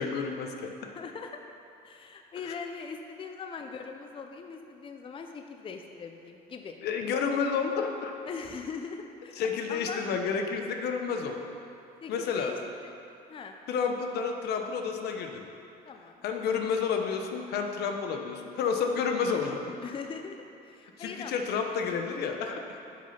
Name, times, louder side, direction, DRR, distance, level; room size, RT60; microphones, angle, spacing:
voice 1, 0.0-0.9 6.8-8.1 9.4-11.4 12.1-12.5 13.7-15.4 16.2-19.6 21.0-22.8, left 6 dB, 75° left, 4 dB, 0.9 m, -30 dB
voice 2, 0.9-1.4 1.8-6.8 8.3-10.1 12.0-12.9 13.3-13.6 15.8-16.2 19.8-21.4, left 5 dB, 30° left, 5 dB, 0.5 m, -41 dB
8.2 x 6.4 x 5.7 m, 2.7 s
cardioid pair, 110°, 17 cm